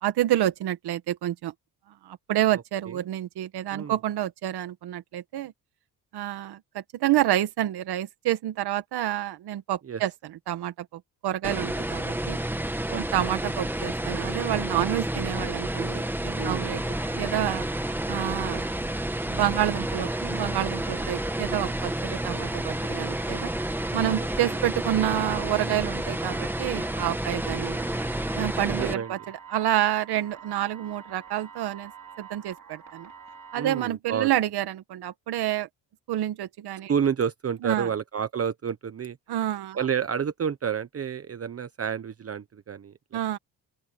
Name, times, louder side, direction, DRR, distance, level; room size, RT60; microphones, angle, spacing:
voice 1, 0.0-1.5 2.0-5.5 6.1-12.4 12.9-16.8 17.1-17.7 18.1-18.7 19.2-23.5 23.9-27.9 28.3-29.2 29.5-31.9 32.2-33.1 33.5-35.7 36.1-36.9 37.6-37.9 39.3-39.8 43.1-43.4, right 13 dB, 85° right, 1.8 m, -28 dB
sound 1, 11.4-28.9, right 1 dB, 5° right, 2.1 m, -30 dB
voice 2, 12.9-13.4 16.4-16.7 19.9-20.0 20.9-21.1 24.4-24.6 28.6-29.2 33.5-34.3 36.9-39.2 39.7-43.2, right 7 dB, 40° right, 1.0 m, -30 dB
sound 2, 16.2-33.8, right 7 dB, 60° right, 2.9 m, -47 dB
open air
cardioid pair, 100°, 38 cm